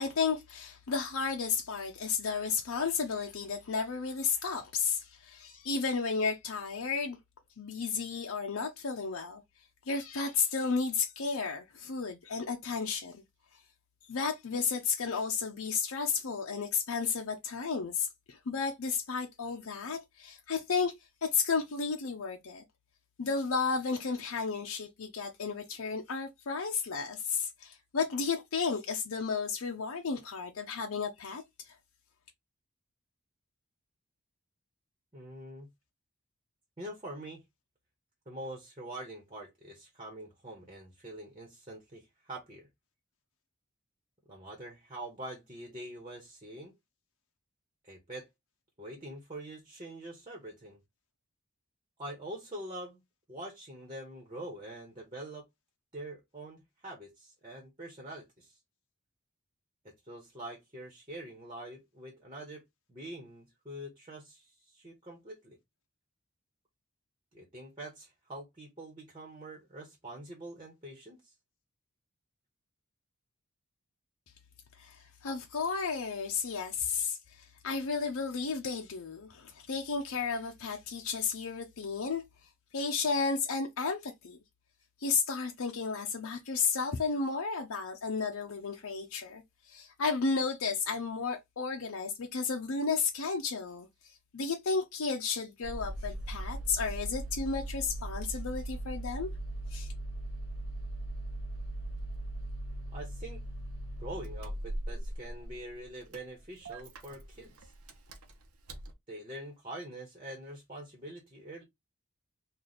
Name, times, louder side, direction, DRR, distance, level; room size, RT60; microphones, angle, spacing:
voice 1, 0.0-7.2 7.6-9.4 9.9-13.2 14.1-20.9 21.2-22.6 23.2-31.7 74.8-77.2 77.6-82.2 82.7-84.4 85.0-89.4 89.7-93.9 94.3-99.3 99.7-99.9, left 5 dB, 80° left, 0.6 m, -33 dB
voice 2, 35.1-35.7 36.8-37.4 38.3-42.7 44.3-46.7 47.8-48.3 48.8-50.8 52.0-53.0 53.3-55.4 55.9-58.5 59.8-62.6 62.9-65.6 67.3-71.3 102.9-103.4 104.0-107.7 109.1-111.6, right 1 dB, 25° right, 1.1 m, -45 dB
Engine starting, 95.6-108.9, right 1 dB, 85° right, 0.8 m, -39 dB
3.2 x 2.4 x 4.0 m
head